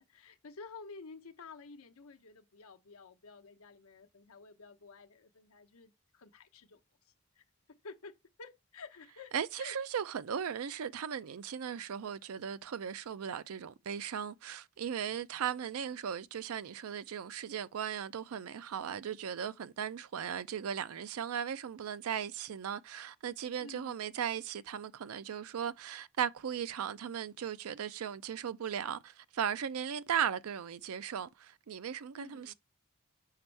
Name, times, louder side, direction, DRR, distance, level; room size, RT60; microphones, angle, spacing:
voice 1, 0.0-6.8 7.0-9.8 23.6-24.2 32.1-32.5, left 4 dB, 90° left, 0.8 m, -52 dB
voice 2, 9.3-32.5, right 8 dB, 85° right, 0.4 m, -37 dB
5.7 x 5.2 x 3.2 m
head